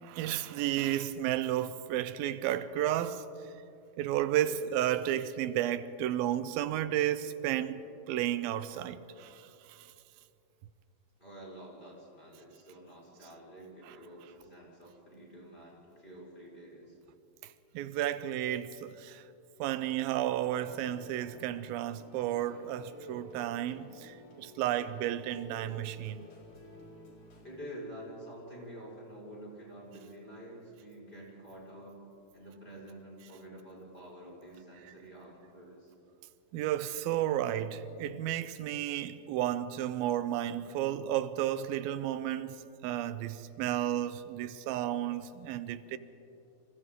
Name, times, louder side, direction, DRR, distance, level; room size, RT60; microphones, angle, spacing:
voice 1, 0.0-3.2 4.0-9.9 17.7-19.2 19.6-26.3 36.5-46.0, right 12 dB, 90° right, 2.5 m, -32 dB
voice 2, 11.2-17.0 27.4-32.0 32.3-35.9, right 1 dB, 15° left, 5.1 m, -48 dB
sound 1, 20.4-27.5, equal, 55° left, 5.5 m, -52 dB
30.0 x 26.0 x 3.7 m
omnidirectional pair, 4.1 m